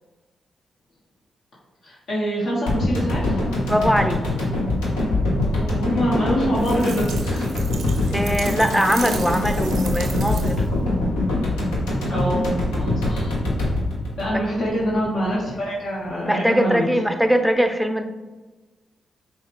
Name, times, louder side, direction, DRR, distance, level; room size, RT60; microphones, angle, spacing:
voice 1, 1.8-3.4 5.4-7.7 7.9-8.1 12.1-13.4 14.2-16.9, equal, 70° left, -7 dB, 1.1 m, -25 dB
sound 1, 2.7-15.0 15.3-15.4, left 1 dB, 90° left, 0.8 m, -23 dB
voice 2, 3.7-4.2 8.1-10.7 16.2-18.0, equal, ahead, 7 dB, 0.5 m, -21 dB
sound 2, 6.6-10.8, right 6 dB, 70° right, 0.5 m, -36 dB
5.5 x 2.4 x 3.2 m, 1.2 s
hypercardioid pair, 40°, 0 cm